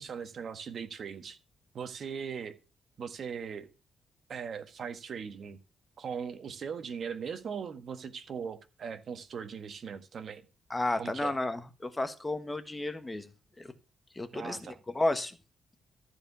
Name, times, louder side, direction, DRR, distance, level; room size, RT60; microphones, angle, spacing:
voice 1, 0.0-1.4 1.7-2.6 3.0-3.7 4.3-5.6 6.0-10.4 11.0-11.3 14.3-14.8, right 6 dB, 55° right, 1.5 m, -39 dB
voice 2, 10.7-13.3 13.6-13.7 14.1-15.4, left 2 dB, 15° left, 1.4 m, -32 dB
14.0 x 4.9 x 6.9 m
cardioid pair, 105°, 0 cm